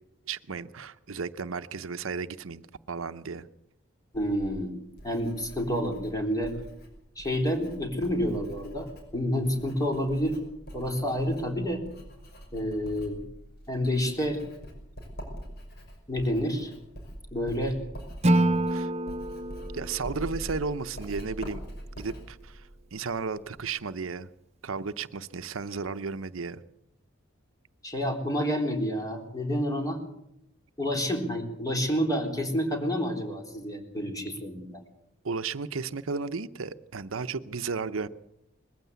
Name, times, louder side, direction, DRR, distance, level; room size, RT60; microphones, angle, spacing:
voice 1, 0.3-3.5 18.7-18.9 19.7-21.6 22.0-24.3 24.6-26.6 35.2-38.1, right 4 dB, 90° right, 12 dB, 0.8 m, -34 dB
Writing, 4.1-23.7, equal, 55° left, 5.7 m, -44 dB
voice 2, 4.1-4.7 5.0-6.5 7.2-8.9 9.1-10.4 10.7-11.8 12.5-13.2 13.7-14.4 16.1-16.7 17.3-17.8 27.8-30.0 30.8-34.8, equal, 20° left, 3 dB, 3.7 m, -29 dB
Acoustic guitar / Strum, 18.2-21.4, right 1 dB, 35° right, 1.0 m, -28 dB
21.0 x 15.0 x 8.2 m, 0.81 s
head